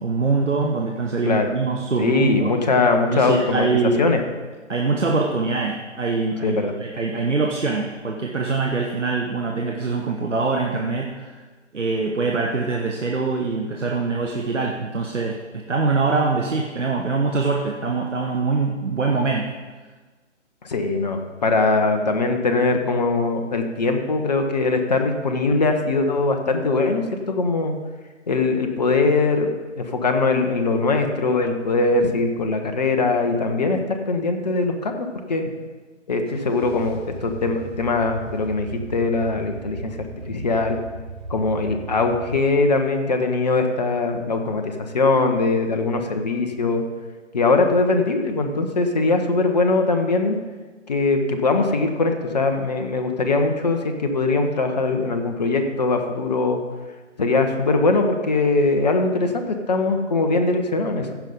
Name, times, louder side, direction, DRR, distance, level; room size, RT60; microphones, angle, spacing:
voice 1, 0.0-2.6 3.1-4.0 4.7-11.4 11.7-19.5, right 4 dB, 75° right, 2 dB, 1.1 m, -23 dB
voice 2, 2.0-4.2 6.4-6.7 20.6-27.7 28.3-29.5 29.8-35.5 36.1-40.0 40.3-40.8 41.3-46.8 47.3-50.4 50.9-56.6 57.2-61.1, left 3 dB, 35° left, 5 dB, 1.0 m, -21 dB
sound 1, 36.3-42.4, right 3 dB, 90° right, 3.6 m, -36 dB
15.0 x 5.5 x 5.2 m, 1.3 s
figure-of-eight pair, 150°, 37 cm